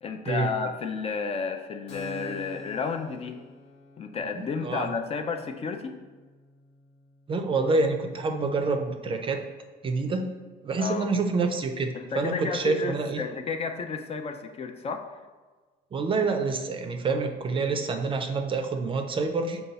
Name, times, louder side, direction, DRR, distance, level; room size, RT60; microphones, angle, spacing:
voice 1, 0.0-3.5 4.0-6.0 10.8-11.1 11.9-15.2, left 5 dB, 35° left, 5 dB, 0.4 m, -32 dB
Keyboard (musical), 1.9-9.2, left 1 dB, 90° left, 0.8 m, -48 dB
voice 2, 4.4-4.9 7.3-9.5 9.8-13.2 15.9-19.6, right 3 dB, 30° right, 5 dB, 0.4 m, -27 dB
5.3 x 2.3 x 4.0 m, 1.4 s
cardioid pair, 110°, 17 cm